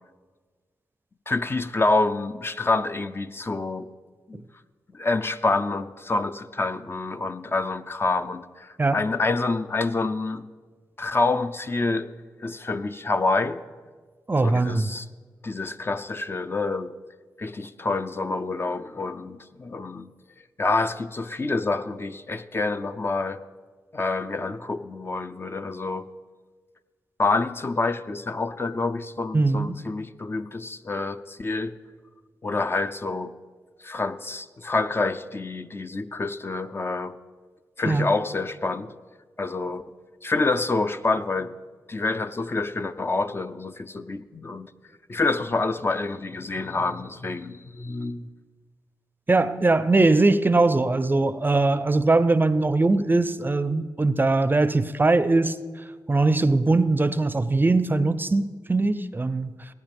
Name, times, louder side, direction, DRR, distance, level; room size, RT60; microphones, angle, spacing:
voice 1, 1.3-3.9 4.3-4.4 4.9-10.4 11.0-12.1 12.4-13.6 14.4-15.1 15.4-16.9 17.4-20.1 20.6-23.4 23.9-26.1 27.2-31.8 32.4-33.3 33.8-37.2 37.8-38.9 39.4-39.8 40.2-41.6 41.9-44.7 45.1-48.3, left 3 dB, 30° left, 10 dB, 0.5 m, -27 dB
voice 2, 14.3-14.9 29.3-29.8 37.9-38.1 49.3-55.6 56.1-59.5, right 3 dB, 25° right, 15 dB, 0.5 m, -21 dB
17.5 x 9.5 x 3.5 m, 1.5 s
cardioid pair, 50°, 7 cm